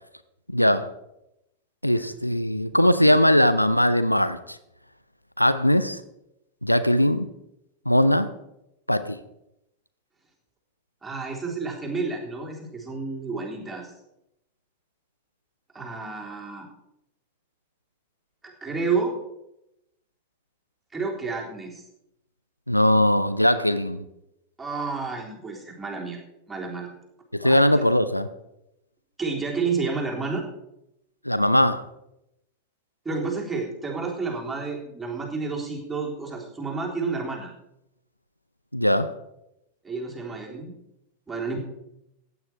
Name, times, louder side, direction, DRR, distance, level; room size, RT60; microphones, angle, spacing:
voice 1, 0.5-0.9 1.8-4.6 5.4-6.0 6.6-7.3 7.9-8.3 8.9-9.2 22.7-24.0 27.3-28.3 31.2-31.9 38.7-39.1, equal, 90° left, 12 dB, 0.6 m, -20 dB
voice 2, 2.7-3.2 11.0-13.9 15.7-16.7 18.4-19.1 20.9-21.8 24.6-26.2 26.5-26.9 27.4-27.6 29.2-30.4 33.1-37.5 39.8-40.7 41.3-41.6, right 4 dB, 10° right, -2 dB, 3.7 m, -30 dB
15.0 x 9.5 x 4.9 m, 0.86 s
figure-of-eight pair, 90°, 0 cm